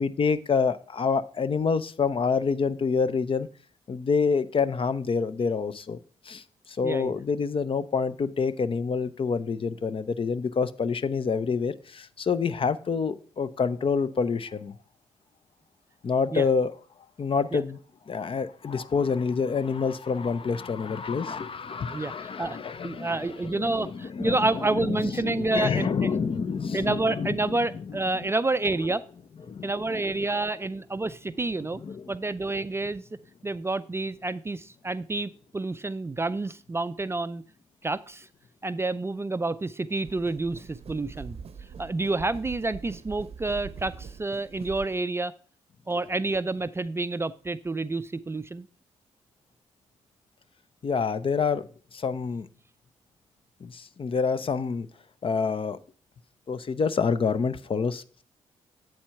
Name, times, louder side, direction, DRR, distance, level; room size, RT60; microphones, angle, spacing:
voice 1, 0.0-3.5 3.9-6.0 6.3-14.7 16.0-16.7 17.2-17.8 18.1-27.3 29.5-29.7 31.8-32.0 50.8-51.6 51.9-52.5 53.6-54.9 55.2-55.8 56.5-58.2, left 5 dB, 45° left, 0.6 m, -27 dB
voice 2, 6.8-7.2 16.3-16.5 17.5-17.6 21.9-22.6 22.8-26.1 26.7-29.0 29.6-31.8 32.1-33.0 33.4-37.4 37.8-38.3 38.6-41.4 41.8-45.3 45.9-48.7, right 2 dB, 20° right, 0.4 m, -29 dB
sound 1, 40.0-45.0, right 6 dB, 50° right, 0.7 m, -43 dB
7.8 x 4.3 x 5.6 m
supercardioid pair, 55°, 13 cm